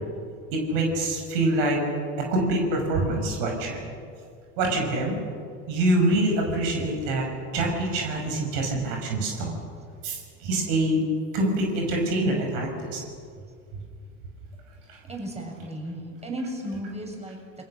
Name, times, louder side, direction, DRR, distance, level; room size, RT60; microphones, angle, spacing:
voice 1, 0.7-1.8 2.3-3.8 4.6-5.2 5.7-7.3 7.5-9.5 10.0-11.0 11.3-13.0 14.9-15.0, right 1 dB, 70° right, 2 dB, 6.0 m, -25 dB
voice 2, 15.1-17.4, right 1 dB, 15° right, 1 dB, 7.1 m, -34 dB
28.0 x 21.5 x 6.6 m, 2.2 s
hypercardioid pair, 85°, 38 cm